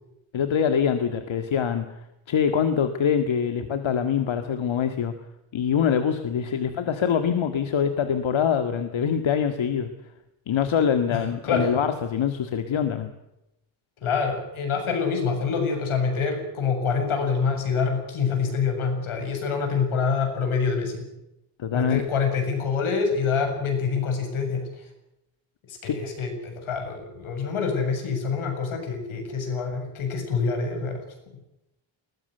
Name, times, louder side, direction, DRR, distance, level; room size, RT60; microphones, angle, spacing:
voice 1, 0.3-1.9 2.3-5.1 5.5-9.9 10.5-13.1 21.6-22.0 25.8-26.0, left 7 dB, 70° left, 8 dB, 2.0 m, -24 dB
voice 2, 11.1-11.7 14.0-21.0 21.7-24.8 25.7-31.0, left 5 dB, 90° left, 4 dB, 7.7 m, -26 dB
21.5 x 20.5 x 8.0 m, 0.88 s
wide cardioid pair, 125°, 48 cm